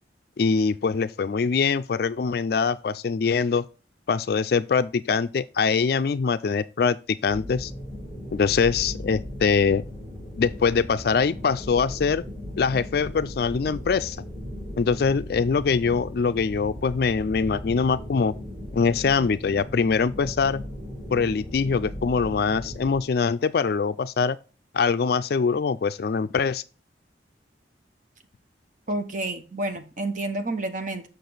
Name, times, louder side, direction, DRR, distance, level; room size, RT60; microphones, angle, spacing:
voice 1, 0.4-3.6 4.1-7.0 7.2-7.7 8.3-9.8 10.4-12.2 12.6-14.2 14.8-18.3 18.7-20.6 21.1-24.4 24.7-26.6, left 5 dB, 55° left, 0.4 m, -23 dB
sound 1, 7.3-23.0, left 1 dB, 10° right, 4.4 m, -37 dB
voice 2, 28.9-31.0, right 2 dB, 45° right, 1.1 m, -29 dB
6.8 x 6.5 x 3.9 m
head